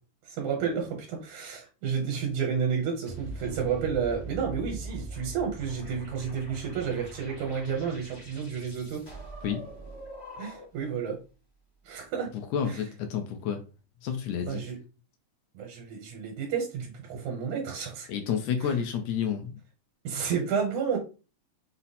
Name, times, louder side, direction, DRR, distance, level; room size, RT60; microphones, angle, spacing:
voice 1, 0.2-9.0 10.4-11.2 11.8-12.3 12.7-12.8 14.5-14.8 15.5-18.1 18.6-18.7 20.0-21.0, right 6 dB, 75° right, 1 dB, 2.3 m, -31 dB
sound 1, 3.1-10.9, right 2 dB, 30° left, 0.9 m, -42 dB
voice 2, 12.3-13.6 14.0-14.6 18.1-19.6, left 7 dB, 75° left, 6 dB, 1.7 m, -30 dB
5.5 x 2.0 x 4.1 m, 0.33 s
omnidirectional pair, 3.5 m